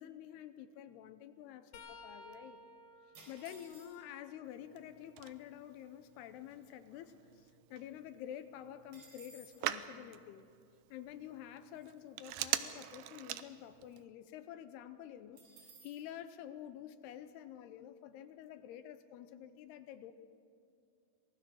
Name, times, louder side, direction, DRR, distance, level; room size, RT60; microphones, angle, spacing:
voice 1, 0.0-2.6 3.3-10.4 10.9-20.1, left 10 dB, 80° left, 11 dB, 2.7 m, -49 dB
sound 1, 1.7-5.5 6.0-8.0 10.9-11.1 12.3-12.5 13.8-13.9, left 2 dB, 60° left, 2.6 m, -59 dB
sound 2, 3.1-4.2 5.0-5.1 5.3-5.7 6.1-7.6 7.9-8.0 8.3-9.7 15.4-16.1, right 3 dB, 55° right, 6.0 m, -59 dB
Telephone, 4.4-14.0, right 13 dB, 85° right, 2.2 m, -44 dB
26.0 x 19.0 x 6.4 m, 2.4 s
omnidirectional pair, 4.9 m